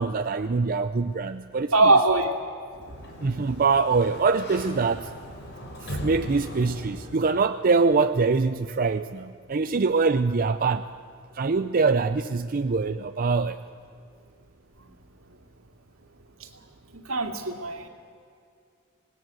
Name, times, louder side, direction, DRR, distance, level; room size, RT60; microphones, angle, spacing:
voice 1, 0.0-1.9 3.2-5.1 5.8-10.8 11.3-13.6, right 4 dB, 40° right, 9 dB, 0.5 m, -24 dB
voice 2, 1.7-2.3 16.9-17.9, right 2 dB, 75° right, 4 dB, 2.4 m, -21 dB
Sliding door, 2.7-7.5, equal, 55° left, 3.8 m, -39 dB
26.5 x 20.0 x 7.7 m, 2.3 s
head